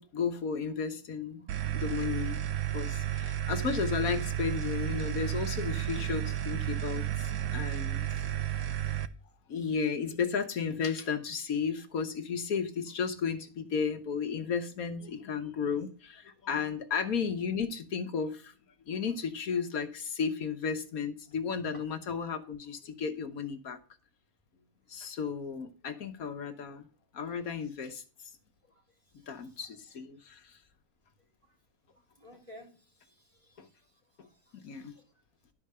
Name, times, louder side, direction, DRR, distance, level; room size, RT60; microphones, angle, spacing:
voice 1, 0.0-1.5 1.7-2.5 2.7-7.0 7.5-8.2 9.5-18.5 18.9-23.8 24.9-26.8 27.1-28.0 29.3-30.6 34.5-34.9, left 6 dB, 70° left, 1.4 m, -33 dB
sound 1, 1.5-9.1, right 12 dB, 70° right, 1.1 m, -32 dB
voice 2, 29.2-29.6 32.2-32.7 33.0-33.7 34.5-35.0, equal, 20° right, 3.1 m, -55 dB
12.0 x 4.9 x 6.6 m
omnidirectional pair, 1.6 m